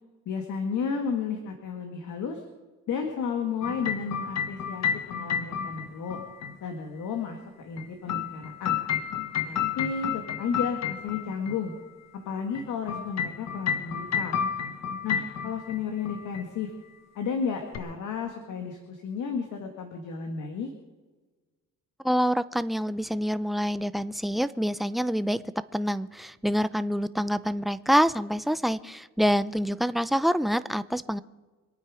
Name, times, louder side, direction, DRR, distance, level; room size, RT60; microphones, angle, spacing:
voice 1, 0.3-2.4 2.9-6.2 6.6-8.8 9.4-11.7 12.1-14.4 15.0-16.7 17.2-20.7, left 6 dB, 75° left, 3 dB, 2.1 m, -32 dB
sound 1, 3.6-6.5 7.8-11.5 12.5-15.8 16.0-16.4 17.7-17.8, left 8 dB, 60° left, 1.3 m, -31 dB
voice 2, 22.0-31.2, equal, ahead, 13 dB, 0.6 m, -26 dB
26.0 x 9.3 x 5.0 m, 1.3 s
cardioid pair, 90°, 30 cm